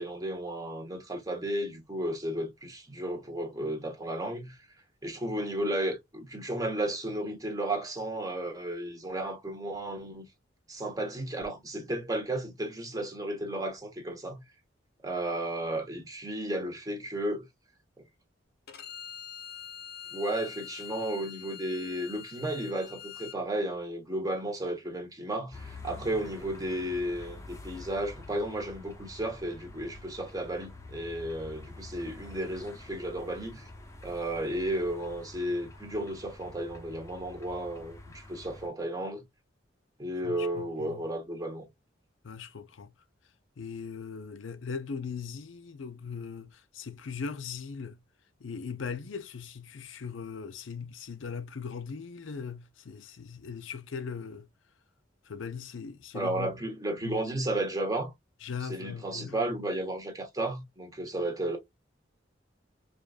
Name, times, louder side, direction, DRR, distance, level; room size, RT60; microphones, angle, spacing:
voice 1, 0.0-4.6 5.0-10.3 10.7-14.4 15.0-17.4 20.1-33.7 34.0-39.2 40.0-41.7 56.1-58.1 58.6-61.6, right 1 dB, 20° right, 1.1 m, -33 dB
Bowed string instrument, 18.7-23.4, left 9 dB, 60° left, 0.8 m, -44 dB
sound 1, 25.5-38.7, left 2 dB, 15° left, 0.8 m, -47 dB
voice 2, 40.2-41.0 42.2-42.9 43.6-48.0 48.4-54.5 55.3-56.6 57.0-57.2 58.4-59.5, left 5 dB, 85° left, 0.5 m, -39 dB
4.9 x 2.5 x 2.4 m
head